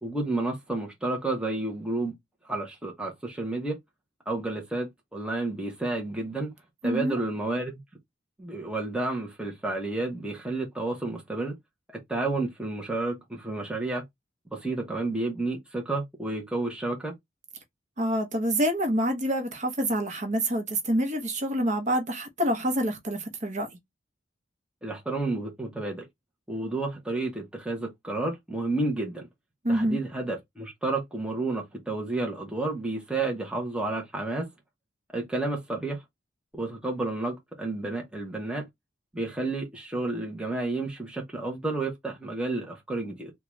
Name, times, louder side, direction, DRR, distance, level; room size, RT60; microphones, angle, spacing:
voice 1, 0.0-2.1 2.4-3.8 4.3-6.5 6.8-7.8 8.4-11.6 11.9-14.0 14.5-17.1 24.8-26.1 26.5-29.3 29.7-34.5 35.1-36.0 36.5-38.7 39.1-43.3, right 2 dB, 5° right, 0.9 m, -31 dB
voice 2, 6.8-7.2 18.0-23.7 29.6-30.0, equal, 40° right, 0.9 m, -27 dB
3.7 x 2.3 x 3.0 m
head